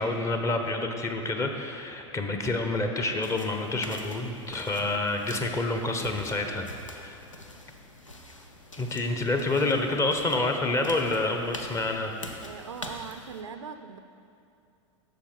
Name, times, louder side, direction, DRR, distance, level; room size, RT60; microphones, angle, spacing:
voice 1, 0.0-7.2 8.8-12.1, left 2 dB, 20° left, 4 dB, 0.9 m, -28 dB
sound 1, 3.2-13.4, left 1 dB, 85° left, 0.9 m, -45 dB
voice 2, 12.4-14.0, right 6 dB, 75° right, 9 dB, 0.5 m, -40 dB
11.5 x 7.3 x 4.5 m, 2.6 s
figure-of-eight pair, 90°, 16 cm